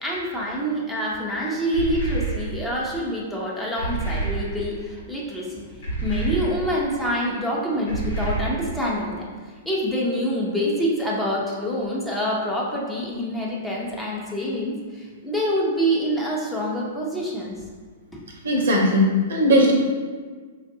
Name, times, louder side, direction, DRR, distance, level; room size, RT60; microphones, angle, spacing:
voice 1, 0.0-9.3 9.6-17.6, equal, 5° left, -4 dB, 0.7 m, -26 dB
sound 1, 1.7-2.8 3.8-4.9 5.8-6.9 7.9-9.0, right 3 dB, 80° left, 1.3 m, -28 dB
voice 2, 18.4-19.7, equal, 70° right, 0 dB, 0.7 m, -18 dB
4.5 x 2.4 x 2.7 m, 1.5 s
hypercardioid pair, 115°, 0 cm